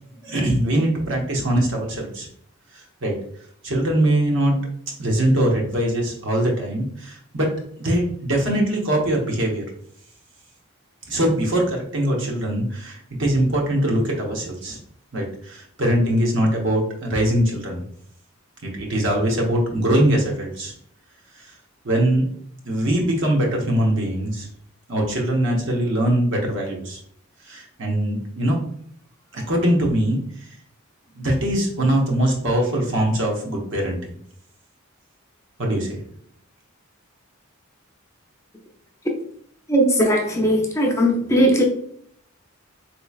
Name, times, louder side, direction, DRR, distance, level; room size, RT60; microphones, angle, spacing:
voice 1, 0.2-2.3 2.7-3.1 3.6-4.5 5.0-7.5 7.8-9.6 11.1-14.8 15.1-17.8 18.6-20.7 21.4-21.5 21.8-22.3 22.6-24.5 24.9-27.0 27.4-28.6 29.3-30.4 31.2-34.2 35.6-36.0, right 1 dB, 60° right, -1 dB, 1.0 m, -22 dB
voice 2, 39.7-41.6, equal, 15° left, 0 dB, 0.5 m, -18 dB
4.1 x 3.1 x 2.3 m, 0.64 s
head